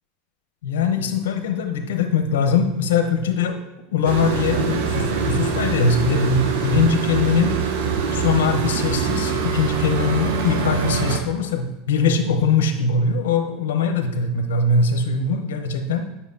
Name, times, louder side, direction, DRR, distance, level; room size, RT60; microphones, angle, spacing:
voice 1, 0.6-3.6 3.9-7.5 8.1-16.0, left 4 dB, 90° left, 6 dB, 0.8 m, -21 dB
sound 1, 4.0-11.2, right 5 dB, 75° right, 0.9 m, -23 dB
8.3 x 5.6 x 2.7 m, 1.0 s
supercardioid pair, 120°, 0 cm